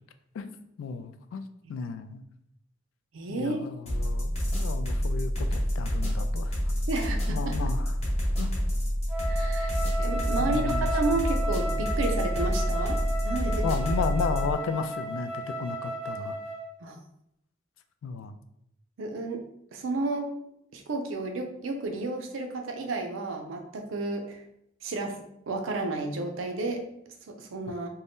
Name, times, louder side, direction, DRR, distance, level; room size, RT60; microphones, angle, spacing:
voice 1, 0.3-1.4 1.7-2.2 3.3-6.6 7.3-7.9 8.4-8.5 10.4-11.2 13.5-16.4 18.0-18.3, left 5 dB, 90° left, 10 dB, 0.3 m, -34 dB
voice 2, 3.1-3.6 6.9-7.6 9.3-13.6 16.8-17.0 19.0-19.4 19.7-20.3 20.7-24.4 24.8-27.9, right 2 dB, 90° right, 5 dB, 0.5 m, -32 dB
sound 1, 3.9-14.5, equal, 35° left, 0.9 m, -28 dB
Wind instrument woodwind instrument, 9.1-16.7, right 1 dB, 5° right, 0.5 m, -34 dB
2.6 x 2.2 x 3.5 m, 0.76 s
head